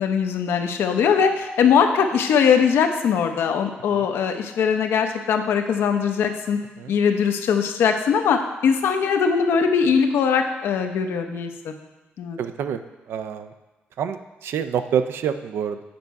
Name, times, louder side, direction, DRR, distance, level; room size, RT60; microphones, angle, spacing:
voice 1, 0.0-6.6 6.9-11.7 12.2-12.4, left 6 dB, 85° left, 5 dB, 0.7 m, -21 dB
voice 2, 12.4-12.8 13.1-13.5 14.0-15.8, right 8 dB, 80° right, 10 dB, 0.5 m, -27 dB
7.8 x 5.3 x 4.6 m, 1.1 s
cardioid pair, 110°, 4 cm